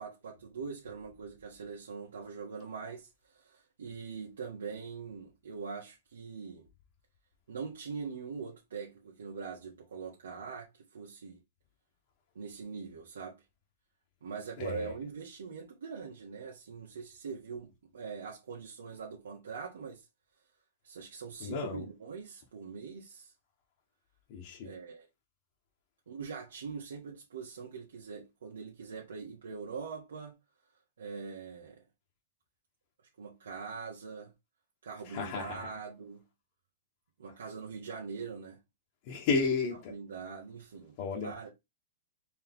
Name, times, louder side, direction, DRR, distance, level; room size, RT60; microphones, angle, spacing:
voice 1, 0.0-6.7 7.5-11.4 12.3-13.4 14.2-20.0 20.8-23.3 24.6-25.1 26.1-30.4 31.0-31.8 33.2-34.3 34.8-36.2 37.2-38.6 39.9-40.9 41.2-41.5, right 5 dB, 90° right, 1.4 m, -42 dB
voice 2, 14.6-14.9 21.4-21.8 24.3-24.7 35.0-35.8 39.0-39.9 41.0-41.3, left 4 dB, 40° left, 1.2 m, -33 dB
4.4 x 3.1 x 3.6 m
hypercardioid pair, 160°, 0 cm